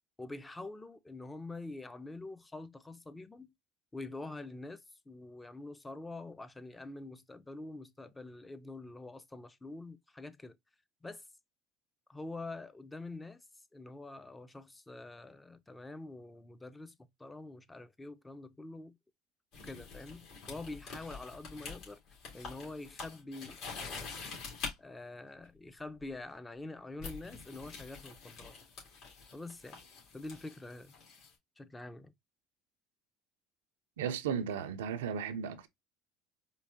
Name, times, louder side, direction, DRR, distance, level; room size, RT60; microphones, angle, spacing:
voice 1, 0.2-3.5 3.9-10.6 11.0-11.2 12.1-13.4 13.7-19.0 19.6-22.0 22.3-24.2 24.8-28.5 29.3-29.8 30.1-30.9 31.6-32.1, left 2 dB, 15° left, 0.5 m, -46 dB
sound 1, 19.5-24.7 26.0-26.2 27.0-31.3, left 4 dB, 65° left, 2.4 m, -46 dB
voice 2, 34.0-35.7, right 7 dB, 85° right, 0.5 m, -35 dB
4.6 x 2.7 x 2.5 m
hypercardioid pair, 75°, 0 cm